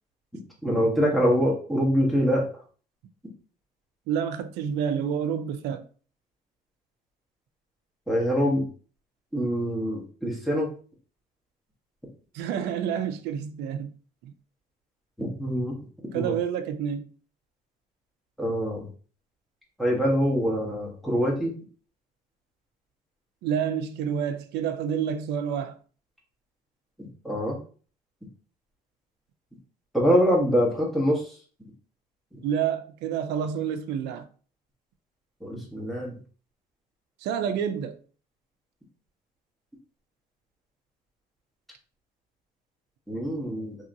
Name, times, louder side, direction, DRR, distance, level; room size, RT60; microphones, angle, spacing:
voice 1, 0.6-2.4 8.1-8.7 9.3-10.7 15.2-15.8 16.1-16.3 18.4-18.9 19.8-21.5 27.0-27.6 29.9-31.3 32.3-32.4 35.4-36.1 43.1-43.8, equal, ahead, 1.1 m, -24 dB
voice 2, 4.1-5.8 12.3-13.9 14.2-14.3 16.1-17.1 23.4-25.7 32.4-34.3 37.2-38.0, right 8 dB, 85° right, 0.4 m, -28 dB
3.0 x 2.8 x 2.5 m
cardioid pair, 110°, 17 cm